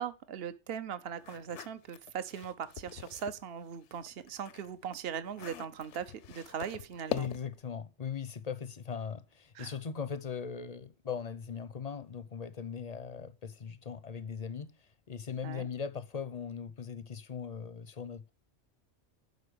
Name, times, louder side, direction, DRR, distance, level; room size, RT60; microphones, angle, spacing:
voice 1, 0.0-7.3 9.5-9.7 15.4-15.7, right 8 dB, 60° right, 1.0 m, -39 dB
sound 1, 1.2-3.4 3.8-7.6, left 11 dB, 75° left, 1.0 m, -43 dB
voice 2, 7.1-14.8 15.1-18.3, left 6 dB, 40° left, 0.6 m, -39 dB
12.0 x 4.1 x 6.4 m
omnidirectional pair, 1.2 m